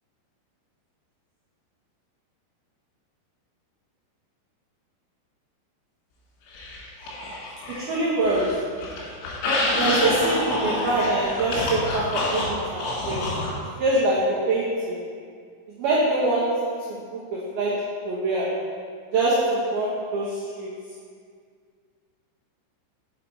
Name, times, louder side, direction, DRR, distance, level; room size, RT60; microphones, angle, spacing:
sound 1, 6.5-7.9 8.2-13.5, left 2 dB, 80° left, 3.7 m, -27 dB
voice 1, 7.7-8.6 9.7-13.3 13.8-15.0 15.8-16.6 16.9-18.6 19.1-20.7, right 2 dB, 75° right, -7 dB, 2.3 m, -24 dB
6.6 x 5.3 x 4.5 m, 2.1 s
omnidirectional pair, 5.2 m